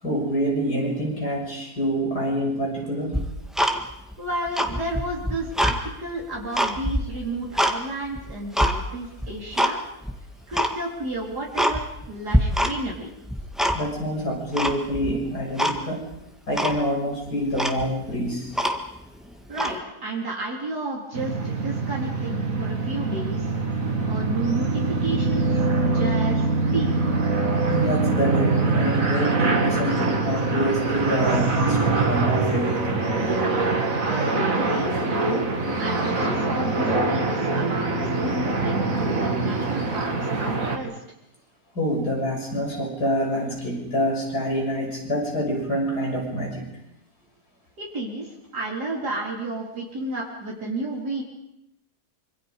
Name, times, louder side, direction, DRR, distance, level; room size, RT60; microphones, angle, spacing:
voice 1, 0.0-3.2 13.7-16.0 16.5-18.6 27.7-33.1 41.8-46.6, equal, 80° left, 0 dB, 7.0 m, -26 dB
Tick-tock, 3.1-4.1 4.5-5.8 6.2-7.8 8.2-8.8 9.2-9.8 10.0-10.1 10.5-10.8 11.2-11.3 11.6-12.1 12.3-13.0 13.2-14.0 14.6-15.1 15.6-15.8 16.1-16.2 16.6-16.8 17.3-17.4 17.5-19.0 19.5-19.8, equal, ahead, 1.7 m, -24 dB
voice 2, 4.2-9.8 10.5-13.2 19.5-23.4 24.0-27.1 34.0-35.5 35.8-41.0 47.8-51.2, right 2 dB, 85° right, -3 dB, 4.3 m, -32 dB
sound 1, 21.1-40.8, right 3 dB, 60° right, 2.7 m, -24 dB
26.0 x 25.5 x 5.2 m, 0.84 s
omnidirectional pair, 1.7 m